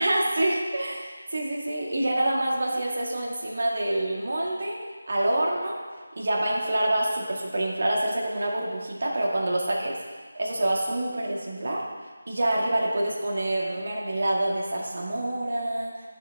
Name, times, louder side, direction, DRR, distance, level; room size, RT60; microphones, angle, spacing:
voice 1, 0.0-4.8 5.0-5.8 6.1-10.0 10.4-11.8 12.3-15.9, right 1 dB, 50° right, -3 dB, 2.1 m, -26 dB
15.0 x 7.0 x 2.9 m, 1.5 s
figure-of-eight pair, 160°, 0 cm